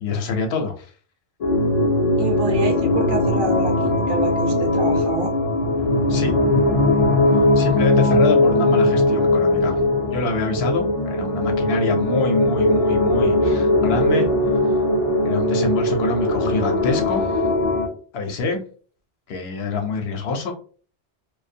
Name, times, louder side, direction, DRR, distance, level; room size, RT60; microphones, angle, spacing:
voice 1, 0.0-0.9 6.1-6.3 7.6-9.8 10.1-14.3 14.6-14.8 15.2-17.4 18.1-18.6 19.3-20.5, left 3 dB, 70° left, 4 dB, 0.8 m, -25 dB
sound 1, 1.4-17.9, left 1 dB, 50° left, 0.4 m, -19 dB
voice 2, 2.2-5.3, right 3 dB, 60° right, 2 dB, 0.6 m, -27 dB
2.5 x 2.2 x 2.6 m, 0.41 s
omnidirectional pair, 1.1 m